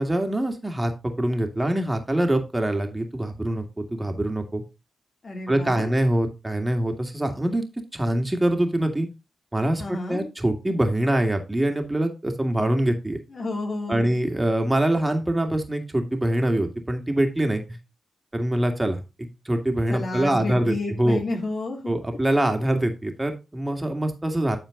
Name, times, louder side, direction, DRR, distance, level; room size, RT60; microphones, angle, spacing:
voice 1, 0.0-4.6 5.5-7.6 7.9-9.1 9.5-13.2 13.9-17.6 18.3-21.2 21.9-24.6, right 1 dB, 20° right, 5 dB, 2.1 m, -24 dB
voice 2, 5.2-6.0 9.8-10.3 13.3-14.1 19.9-21.8, left 2 dB, 55° left, 1 dB, 3.3 m, -31 dB
11.0 x 4.4 x 3.8 m, 0.27 s
supercardioid pair, 40°, 0 cm